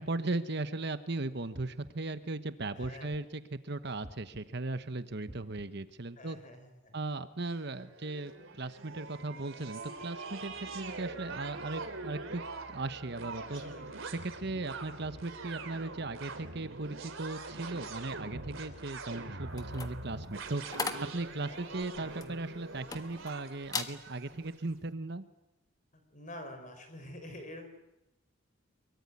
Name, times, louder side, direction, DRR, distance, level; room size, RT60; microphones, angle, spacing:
voice 1, 0.0-6.4 6.9-13.6 14.1-20.9 21.1-25.2, right 2 dB, 55° right, 11 dB, 1.1 m, -37 dB
sound 1, 1.5-2.2 2.8-3.5 4.0-4.7 5.3-5.9, right 1 dB, 30° right, 1.4 m, -52 dB
voice 2, 2.8-3.1 6.2-7.0 13.5-14.0 21.5-21.7 25.9-27.7, left 1 dB, 40° left, 7 dB, 4.9 m, -47 dB
sound 2, 7.5-24.6, right 3 dB, 75° right, 3.4 m, -44 dB
sound 3, 19.5-23.3 23.6-24.0 24.4-24.7, left 4 dB, 20° left, 1.4 m, -39 dB
23.5 x 23.0 x 9.7 m, 0.92 s
head